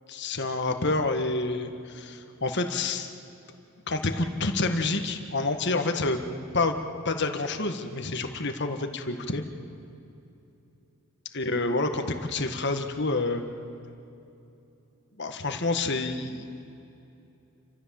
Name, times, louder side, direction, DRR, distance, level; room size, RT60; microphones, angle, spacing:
voice 1, 0.1-3.1 3.9-6.2 6.5-9.4 11.3-13.4 15.2-16.5, left 3 dB, 50° left, 6 dB, 1.7 m, -28 dB
29.5 x 14.5 x 7.7 m, 2.8 s
head